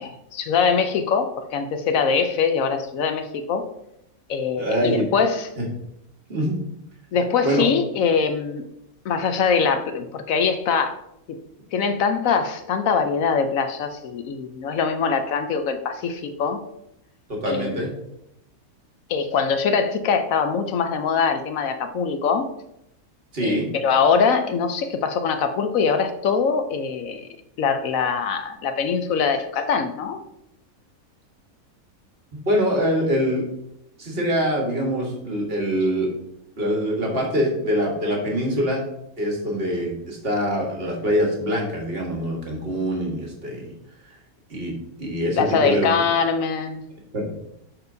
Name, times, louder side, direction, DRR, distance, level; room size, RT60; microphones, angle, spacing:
voice 1, 0.0-3.6 4.3-5.5 7.1-8.6 9.0-11.0 11.3-11.4 11.7-16.6 17.5-17.8 19.1-22.5 23.4-27.3 27.6-30.2 45.4-46.8, left 5 dB, 70° left, 8 dB, 1.0 m, -23 dB
voice 2, 4.6-5.1 5.6-5.7 6.3-6.6 7.4-7.6 17.3-17.9 23.3-23.7 32.5-33.5 34.0-36.1 36.6-38.8 39.2-43.7 44.5-45.9 47.1-47.4, equal, 40° right, 0 dB, 1.6 m, -24 dB
11.5 x 4.4 x 2.7 m, 0.82 s
omnidirectional pair, 1.6 m